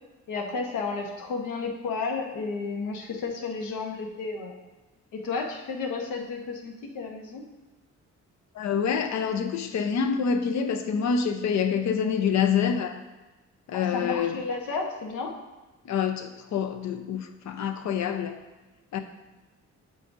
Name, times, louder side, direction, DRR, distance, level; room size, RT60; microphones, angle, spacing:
voice 1, 0.3-4.5 5.1-7.4 13.7-15.3, left 4 dB, 85° left, 1 dB, 1.3 m, -32 dB
voice 2, 8.5-13.0 13.7-14.5 15.8-18.4 18.9-19.0, left 7 dB, 65° left, 7 dB, 0.8 m, -26 dB
8.3 x 7.5 x 2.7 m, 1.1 s
cardioid pair, 90°, 30 cm